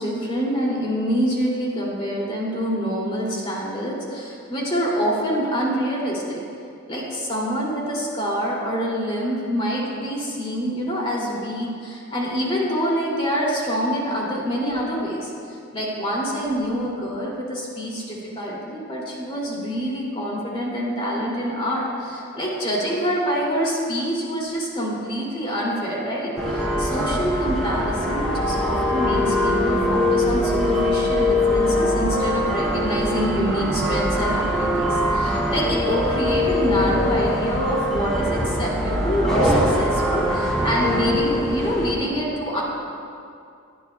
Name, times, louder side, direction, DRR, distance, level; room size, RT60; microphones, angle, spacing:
voice 1, 0.0-6.4 6.9-42.6, equal, 25° left, -4 dB, 2.5 m, -26 dB
sound 1, 26.4-41.9, left 1 dB, 5° left, 2.8 m, -22 dB
18.5 x 11.5 x 2.3 m, 2.4 s
head